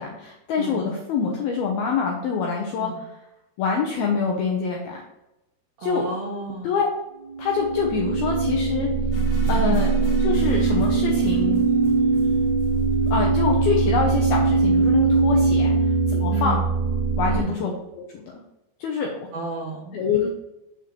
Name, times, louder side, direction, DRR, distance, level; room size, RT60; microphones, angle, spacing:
voice 1, 0.0-3.1 3.6-5.0 5.8-6.1 6.6-6.9 7.4-8.9 9.5-9.9 10.2-11.6 13.1-15.7 16.1-16.6 17.2-18.1 18.8-19.3 19.9-20.3, left 5 dB, 90° left, 0 dB, 2.2 m, -25 dB
voice 2, 0.6-0.9 2.8-3.0 5.8-6.8 9.6-9.9 16.3-16.6 17.3-17.6 19.3-20.0, right 3 dB, 85° right, -5 dB, 1.6 m, -32 dB
sound 1, 7.3-17.4, right 4 dB, 60° right, 3.5 m, -21 dB
sound 2, 9.1-14.1, right 4 dB, 35° left, 1.9 m, -36 dB
8.3 x 7.5 x 3.1 m, 0.91 s
omnidirectional pair, 5.6 m